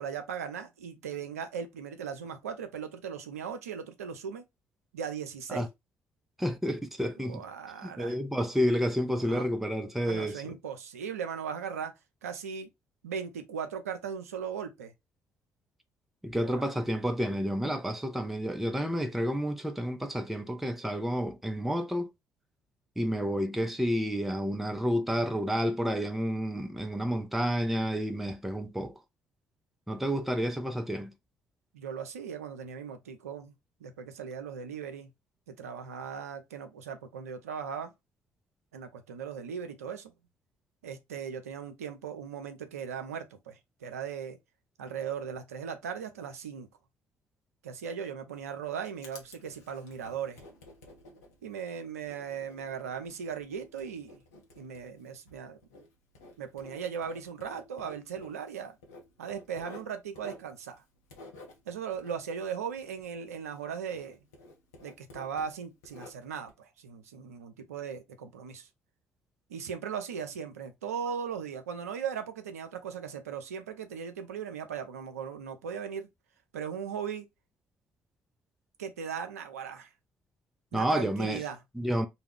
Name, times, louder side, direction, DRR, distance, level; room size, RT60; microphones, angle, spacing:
voice 1, 0.0-4.4 4.9-5.7 7.2-8.2 9.1-9.5 10.0-11.9 12.2-12.7 13.0-14.9 16.4-16.7 31.7-33.5 33.8-35.1 35.5-37.9 38.7-40.1 40.8-44.4 44.8-46.7 47.6-50.4 51.4-54.2 54.6-55.6 56.4-58.8 59.2-60.8 61.7-64.2 64.8-68.7 69.5-76.1 76.5-77.3 78.8-79.9 80.7-81.6, right 7 dB, 80° right, 0.4 m, -38 dB
voice 2, 6.4-7.4 7.8-10.4 16.2-22.1 23.0-28.9 29.9-31.1 80.7-81.4 81.8-82.1, equal, 5° right, 0.4 m, -30 dB
Writing, 48.3-63.7 63.9-66.5, left 2 dB, 80° left, 0.6 m, -53 dB
2.3 x 2.0 x 3.4 m
figure-of-eight pair, 45°, 8 cm